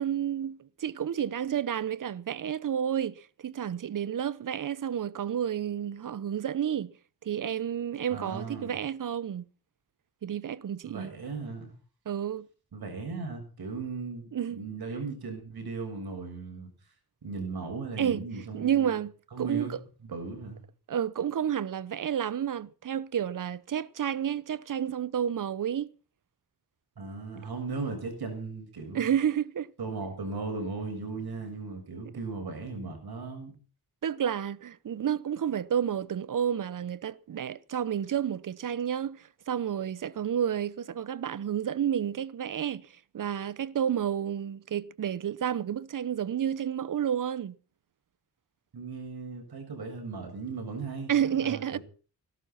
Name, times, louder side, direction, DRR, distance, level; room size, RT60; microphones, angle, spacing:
voice 1, 0.0-6.9 7.2-9.5 10.2-11.1 12.1-12.5 14.3-14.6 18.0-19.8 20.9-25.9 28.9-29.7 34.0-42.9 43.1-47.6 51.1-51.8, right 9 dB, 55° right, 0.8 m, -30 dB
voice 2, 8.1-8.8 10.8-11.7 12.7-16.7 17.2-18.9 19.3-19.7 20.1-20.6 27.0-29.1 29.8-33.5 48.7-51.1 51.4-51.8, right 4 dB, 75° right, 7.1 m, -37 dB
17.5 x 12.0 x 5.8 m
wide cardioid pair, 140°, 38 cm